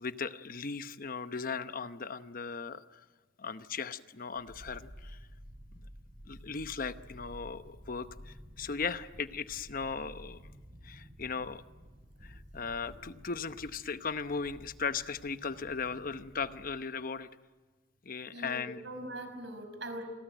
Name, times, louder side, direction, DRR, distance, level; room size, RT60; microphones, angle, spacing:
voice 1, 0.0-3.0 3.4-5.2 5.7-5.9 6.3-10.4 10.8-11.6 12.2-17.3 18.0-18.8, left 5 dB, 50° left, 11 dB, 0.9 m, -37 dB
sound 1, 4.3-16.7 17.0-17.1, equal, 40° right, 7.4 m, -52 dB
voice 2, 18.3-20.0, right 1 dB, 75° right, 8 dB, 5.2 m, -41 dB
28.5 x 22.0 x 9.1 m, 1.3 s
head